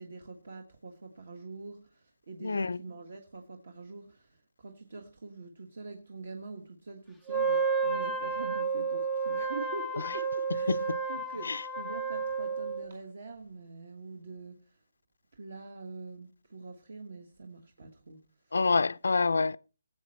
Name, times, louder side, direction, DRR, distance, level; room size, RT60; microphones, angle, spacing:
voice 1, 0.0-14.8 15.3-18.6, right 3 dB, 50° right, 1.5 m, -45 dB
voice 2, 2.4-2.8 10.7-11.0 11.5-11.6 18.5-19.6, left 4 dB, 75° left, 0.5 m, -27 dB
Wind instrument woodwind instrument, 7.3-12.9, right 4 dB, ahead, 0.5 m, -31 dB
18.5 x 7.7 x 4.3 m
hypercardioid pair, 175°, 0 cm